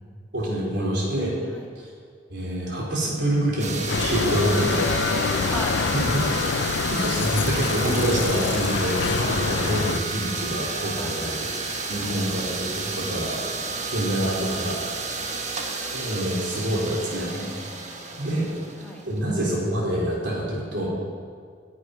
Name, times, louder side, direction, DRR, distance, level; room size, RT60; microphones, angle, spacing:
voice 1, 0.3-1.4 2.3-4.8 5.9-6.2 6.9-11.5 11.9-13.4 13.9-14.8 15.9-17.5 18.2-18.5 19.0-20.9, right 1 dB, 65° right, -3 dB, 3.9 m, -26 dB
sound 1, 3.6-19.3, right 3 dB, 40° right, 1.4 m, -31 dB
Bicycle, 3.9-10.0, left 6 dB, 80° left, 0.5 m, -26 dB
voice 2, 4.7-6.7 11.0-11.2 12.0-12.2 12.9-13.9 15.2-15.4 17.6-18.4 18.8-19.0, left 1 dB, 5° left, -2 dB, 1.9 m, -37 dB
11.0 x 8.4 x 9.5 m, 2.1 s
head